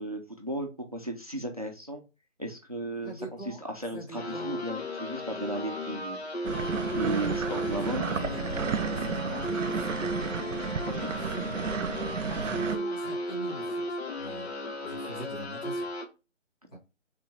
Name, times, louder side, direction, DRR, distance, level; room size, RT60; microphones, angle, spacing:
voice 1, 0.0-2.0 2.4-3.3 3.7-6.2 6.5-8.3 11.0-11.1, right 1 dB, 30° right, 3 dB, 0.6 m, -35 dB
voice 2, 3.0-3.6 3.9-4.7 7.4-7.7 8.2-10.0 11.2-11.5 12.1-14.5 14.8-15.9 16.7-16.8, right 1 dB, 30° left, -7 dB, 1.6 m, -43 dB
sound 1, 4.2-16.1, left 1 dB, 60° left, 1.0 m, -35 dB
sound 2, 6.4-12.8, right 6 dB, 80° right, 0.7 m, -32 dB
3.7 x 3.2 x 4.0 m, 0.29 s
figure-of-eight pair, 175°, 37 cm